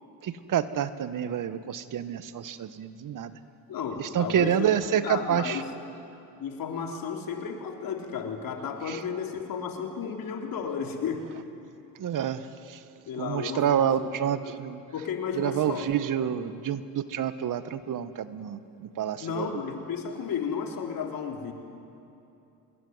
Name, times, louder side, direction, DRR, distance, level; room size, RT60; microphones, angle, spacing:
voice 1, 0.2-3.3 4.0-5.6 8.9-9.0 12.0-12.8 13.1-14.8 15.4-19.6, right 9 dB, 55° right, 13 dB, 1.3 m, -28 dB
voice 2, 3.7-4.7 5.0-5.7 6.4-11.3 13.1-14.1 14.4-14.6 14.9-15.9 19.2-21.5, left 6 dB, 65° left, 3 dB, 3.7 m, -33 dB
25.0 x 21.0 x 9.5 m, 2.8 s
supercardioid pair, 80°, 37 cm